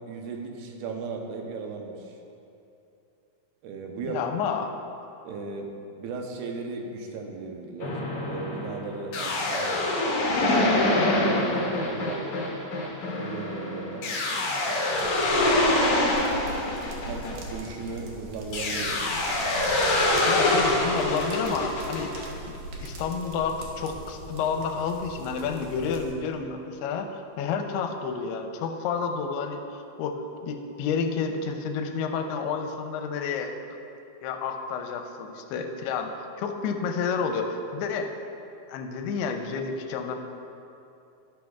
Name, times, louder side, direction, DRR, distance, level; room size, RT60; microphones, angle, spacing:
voice 1, 0.0-2.2 3.6-4.2 5.2-5.7 6.0-8.0 8.2-9.8 10.4-12.4 13.2-14.1 17.0-19.2, right 4 dB, 85° right, 2 dB, 2.9 m, -36 dB
voice 2, 4.1-4.7 17.1-17.4 20.1-22.1 22.5-29.6 30.0-33.5 34.2-36.1 36.4-38.1 38.7-40.2, left 5 dB, 85° left, 5 dB, 2.6 m, -30 dB
sound 1, 7.8-17.9 18.5-22.2, left 1 dB, 60° left, 2.3 m, -25 dB
sound 2, 14.9-26.1, right 2 dB, 65° right, 2.1 m, -41 dB
11.5 x 11.5 x 2.4 m, 2.7 s
omnidirectional pair, 4.6 m